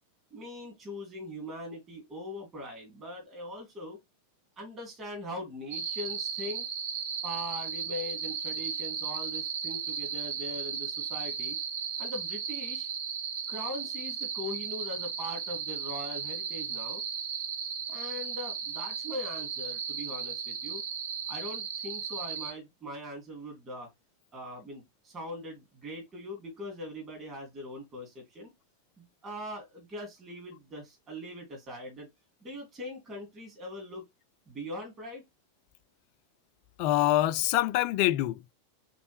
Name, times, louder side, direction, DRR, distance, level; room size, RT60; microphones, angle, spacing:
voice 1, 0.3-4.0 4.6-6.7 7.2-11.6 12.0-12.9 13.5-17.0 17.9-20.8 21.3-23.9 24.3-28.5 29.0-32.1 32.4-34.0 34.5-35.2, left 1 dB, 25° right, 2.5 m, -41 dB
sound 1, 5.7-22.5, right 7 dB, 50° right, 0.7 m, -35 dB
voice 2, 36.8-38.5, left 15 dB, 45° left, 0.3 m, -25 dB
4.0 x 3.7 x 3.3 m
figure-of-eight pair, 90°, 0 cm